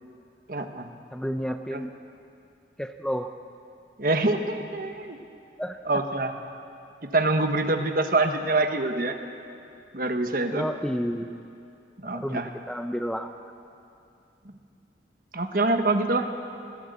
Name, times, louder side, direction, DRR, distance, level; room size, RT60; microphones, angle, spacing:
voice 1, 0.5-0.9 1.7-1.8 4.0-5.2 5.8-6.3 7.0-9.2 9.9-10.7 12.0-12.5 14.4-14.5 15.3-16.3, right 2 dB, 50° right, 6 dB, 1.3 m, -25 dB
voice 2, 1.1-1.9 2.8-3.3 5.6-5.8 10.5-11.4 12.1-13.3, equal, 5° left, 7 dB, 0.5 m, -30 dB
19.5 x 16.5 x 8.3 m, 2.6 s
head